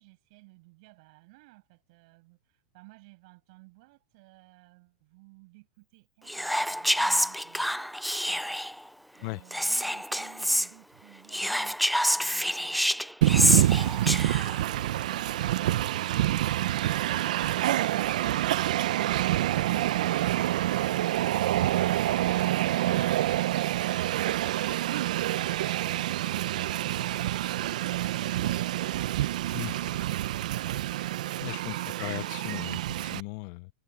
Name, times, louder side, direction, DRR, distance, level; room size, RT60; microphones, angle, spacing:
voice 1, 0.0-7.9 9.1-11.8 12.1-13.2 31.8-32.4, right 25 dB, 55° right, 7.8 m, -56 dB
Whispering, 6.3-8.8 9.5-10.7 11.3-14.6, equal, ahead, 0.3 m, -27 dB
Train, 13.2-33.2, right 14 dB, 75° right, 0.7 m, -27 dB
voice 2, 29.5-29.9 31.4-33.7, left 26 dB, 50° left, 0.6 m, -38 dB
supercardioid pair, 130°, 4 cm